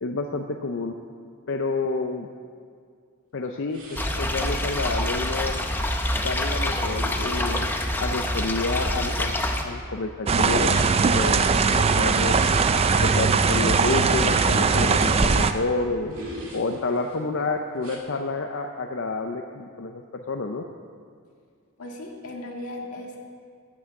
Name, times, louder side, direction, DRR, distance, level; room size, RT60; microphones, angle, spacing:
voice 1, 0.0-0.9 1.5-2.3 3.3-5.6 6.2-7.7 8.0-10.7 11.1-11.4 11.7-12.4 13.0-16.3 16.5-20.6, left 3 dB, 60° left, 3 dB, 0.5 m, -29 dB
sound 1, 3.7-9.0 10.3-12.7 13.4-15.5 16.1-17.2 17.8-18.0, right 1 dB, 70° right, 2.0 m, -42 dB
sound 2, 4.0-9.6, left 1 dB, 10° left, 0.6 m, -26 dB
sound 3, 10.3-15.5, right 4 dB, 25° right, 0.3 m, -20 dB
voice 2, 21.8-23.2, left 1 dB, 80° left, 1 dB, 1.8 m, -36 dB
14.0 x 6.2 x 7.1 m, 2.1 s
head